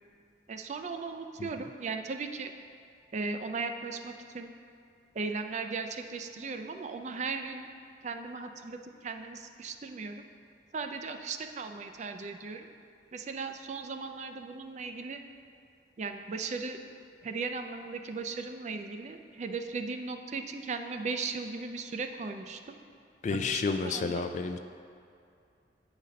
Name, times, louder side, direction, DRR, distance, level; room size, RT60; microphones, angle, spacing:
voice 1, 0.5-2.5 3.1-4.5 5.1-7.7 8.0-10.2 10.7-12.7 13.1-15.2 16.0-16.8 17.2-22.7 23.5-24.3, right 4 dB, 40° right, 6 dB, 0.4 m, -37 dB
voice 2, 23.2-24.6, left 4 dB, 40° left, 7 dB, 0.3 m, -30 dB
8.7 x 4.1 x 5.1 m, 2.4 s
head